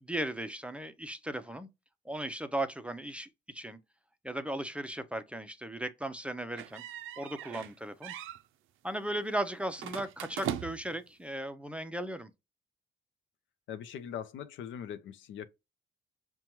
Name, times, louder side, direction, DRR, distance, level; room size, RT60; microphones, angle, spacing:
voice 1, 0.0-1.7 2.1-3.8 4.2-6.8 7.2-8.1 8.8-12.3, right 1 dB, 5° right, 0.5 m, -36 dB
sound 1, 6.6-7.7 8.0-8.4 9.8-11.0, right 10 dB, 85° right, 0.4 m, -39 dB
voice 2, 13.7-15.5, left 9 dB, 75° left, 0.5 m, -41 dB
5.6 x 2.3 x 3.0 m
cardioid pair, 90°, 20 cm